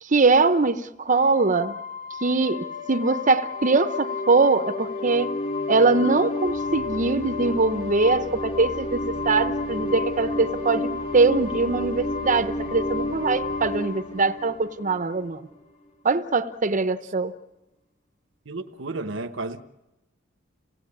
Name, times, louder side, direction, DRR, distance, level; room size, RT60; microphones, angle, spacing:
voice 1, 0.0-1.8 2.2-5.3 5.7-15.5 16.0-17.3, right 3 dB, 40° right, 0.9 m, -22 dB
sound 1, 1.1-15.5, left 2 dB, 35° left, 4.5 m, -31 dB
voice 2, 18.4-19.6, right 2 dB, 75° right, 1.1 m, -32 dB
27.5 x 17.5 x 8.7 m
head